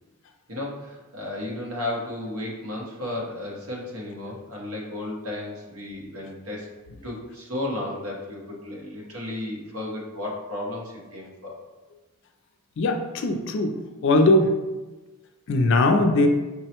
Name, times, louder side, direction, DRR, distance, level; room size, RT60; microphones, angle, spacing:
voice 1, 0.5-6.7 7.0-11.6, left 1 dB, 80° right, -3 dB, 1.0 m, -33 dB
voice 2, 12.8-13.7 14.0-14.5 15.5-16.3, left 2 dB, 55° left, 5 dB, 0.4 m, -20 dB
5.3 x 2.1 x 2.9 m, 1.2 s
head